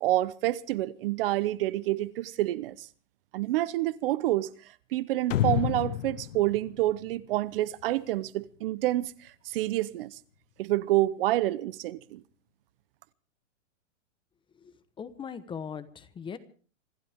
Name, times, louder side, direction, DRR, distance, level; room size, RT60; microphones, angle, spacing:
voice 1, 0.0-2.9 3.3-4.5 4.9-10.2 10.6-12.2, right 16 dB, 50° right, 0.9 m, -28 dB
sound 1, 5.3-7.8, left 12 dB, 90° left, 0.9 m, -30 dB
voice 2, 14.6-16.4, left 7 dB, 15° left, 1.1 m, -40 dB
26.0 x 15.5 x 3.6 m
hypercardioid pair, 145°, 36 cm